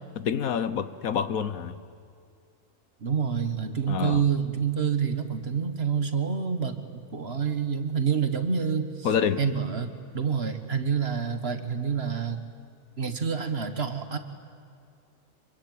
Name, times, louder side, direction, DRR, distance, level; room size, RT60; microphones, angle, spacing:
voice 1, 0.2-1.7 3.9-4.2 9.0-9.4, left 7 dB, 85° left, 14 dB, 1.5 m, -27 dB
voice 2, 3.0-9.1 9.4-12.4 13.0-14.2, right 6 dB, 45° right, 8 dB, 1.9 m, -27 dB
26.0 x 24.0 x 9.1 m, 2.4 s
omnidirectional pair, 1.4 m